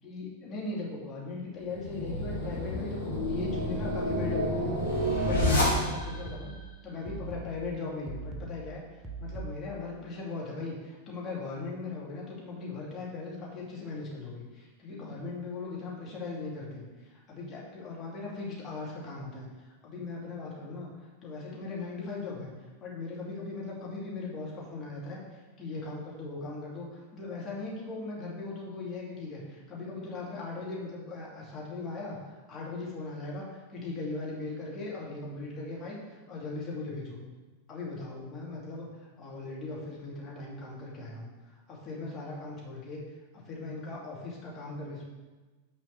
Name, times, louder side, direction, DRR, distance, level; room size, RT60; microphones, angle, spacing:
voice 1, 0.0-6.5 6.8-8.8 9.2-19.5 19.8-22.5 22.8-37.2 37.7-38.9 39.2-41.3 41.7-43.0 43.3-45.0, left 3 dB, 25° left, -4 dB, 2.7 m, -39 dB
sound 1, 1.7-6.3, left 1 dB, 75° left, 2.5 m, -29 dB
sound 2, 6.0-9.9, right 3 dB, 15° right, 1.2 m, -42 dB
6.5 x 5.1 x 6.1 m, 1.3 s
figure-of-eight pair, 90°, 0 cm